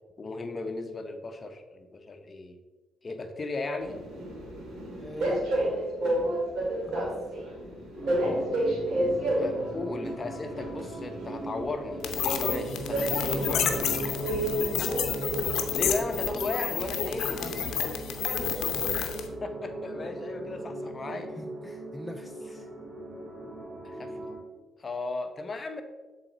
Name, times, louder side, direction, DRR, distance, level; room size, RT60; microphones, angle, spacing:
voice 1, 0.2-2.6 3.0-4.0 9.4-13.7 15.7-17.4 19.4-21.3 23.8-24.1 24.8-25.8, left 3 dB, 35° left, 6 dB, 0.8 m, -35 dB
Train, 3.8-17.8, right 1 dB, 65° right, 1.9 m, -32 dB
voice 2, 5.0-5.4 6.8-7.2 8.0-8.4 13.1-14.0 17.4-18.7 21.4-22.7, left 1 dB, 5° left, 3 dB, 0.5 m, -42 dB
sound 1, 7.9-24.4, right 1 dB, 35° right, 1.1 m, -39 dB
sound 2, 12.0-19.3, left 8 dB, 80° left, 0.6 m, -30 dB
7.4 x 4.0 x 3.9 m, 1.3 s
cardioid pair, 90°, 0 cm